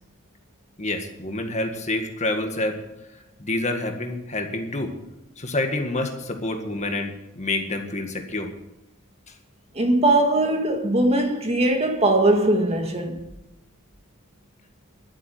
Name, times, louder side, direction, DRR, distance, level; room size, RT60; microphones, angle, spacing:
voice 1, 0.8-2.8 3.1-4.9 5.4-8.5 9.3-9.4, left 2 dB, 35° left, 1.8 m, -28 dB
voice 2, 9.7-13.2, right 1 dB, 30° right, 1.9 m, -20 dB
12.5 x 8.6 x 9.3 m
head